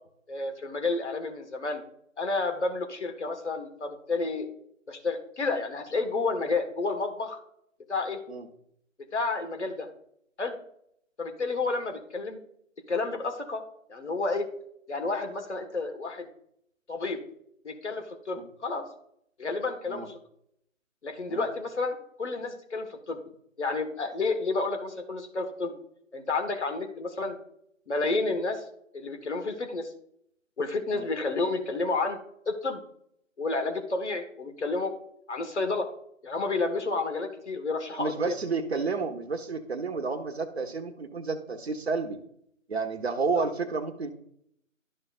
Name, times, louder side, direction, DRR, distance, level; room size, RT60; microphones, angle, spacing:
voice 1, 0.3-1.8 2.2-4.5 4.9-7.4 7.9-8.2 9.1-9.9 10.4-10.6 11.2-12.4 12.9-13.6 13.9-14.4 14.9-16.3 16.9-17.2 17.6-18.9 19.4-20.2 21.0-23.2 23.6-25.7 26.1-27.4 27.9-28.6 28.9-29.9 30.6-32.2 32.5-32.8 33.4-34.9 35.3-35.9 36.2-38.4 43.3-43.5, left 3 dB, 60° left, 6 dB, 1.6 m, -30 dB
voice 2, 37.9-42.2 42.7-44.1, right 4 dB, 50° right, 7 dB, 1.1 m, -31 dB
12.5 x 5.5 x 2.5 m, 0.72 s
figure-of-eight pair, 155°, 40 cm